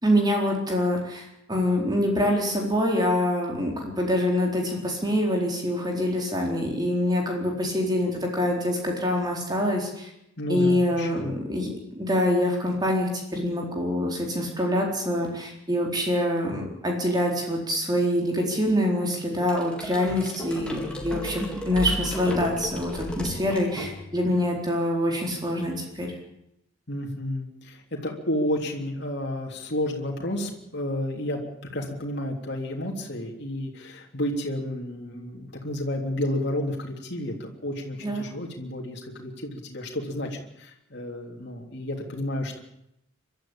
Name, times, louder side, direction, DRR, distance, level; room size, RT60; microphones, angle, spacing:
voice 1, 0.0-10.1 10.5-11.7 12.0-26.1 38.0-38.2, left 1 dB, 20° right, 0 dB, 4.1 m, -25 dB
voice 2, 10.4-11.3 26.9-31.4 31.7-42.6, left 1 dB, 50° left, 0 dB, 3.4 m, -31 dB
sound 1, 19.5-24.3, left 1 dB, 5° left, 3.7 m, -34 dB
24.5 x 13.0 x 8.9 m, 0.80 s
head